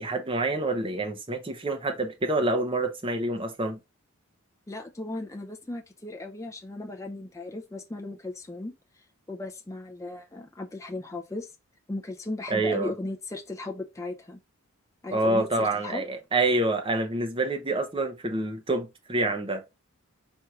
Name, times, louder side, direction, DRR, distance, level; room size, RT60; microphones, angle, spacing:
voice 1, 0.0-3.8 12.5-12.9 15.1-19.6, right 2 dB, 25° right, 0.7 m, -27 dB
voice 2, 4.7-8.7 9.3-11.5 11.9-14.4 15.0-16.0, left 2 dB, 15° left, 0.5 m, -36 dB
4.5 x 2.6 x 4.6 m
head